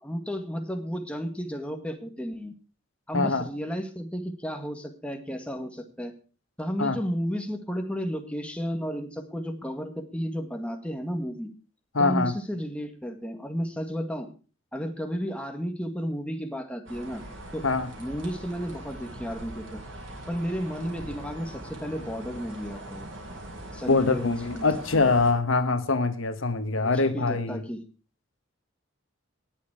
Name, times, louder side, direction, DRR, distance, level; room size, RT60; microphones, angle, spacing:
voice 1, 0.0-2.5 3.1-6.1 6.6-11.5 12.0-14.3 14.7-17.2 17.5-17.7 18.0-19.8 20.3-23.1 23.7-24.7 24.9-25.1 26.8-27.8, equal, 5° left, 1.8 m, -33 dB
voice 2, 3.1-3.4 6.8-7.0 11.9-12.3 17.6-17.9 23.9-27.6, left 3 dB, 80° left, 1.2 m, -24 dB
sound 1, 16.9-25.3, right 1 dB, 70° right, 5.8 m, -42 dB
19.5 x 7.4 x 4.9 m
head